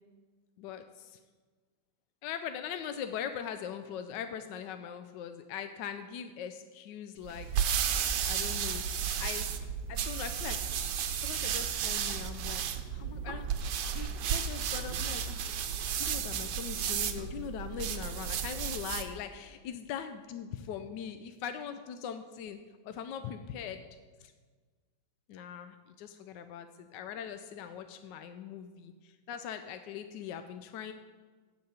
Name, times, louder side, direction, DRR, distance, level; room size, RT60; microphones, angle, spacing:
voice 1, 0.6-1.2 2.2-7.7 8.3-9.5 9.9-10.6 11.2-13.5 13.9-15.5 15.9-22.6 22.8-23.8 24.2-24.3 25.3-26.7 26.9-30.9, left 8 dB, 75° left, 8 dB, 1.2 m, -41 dB
sound 1, 7.2-19.1, right 8 dB, 70° right, 1.3 m, -33 dB
12.0 x 4.8 x 7.9 m, 1.4 s
omnidirectional pair, 2.1 m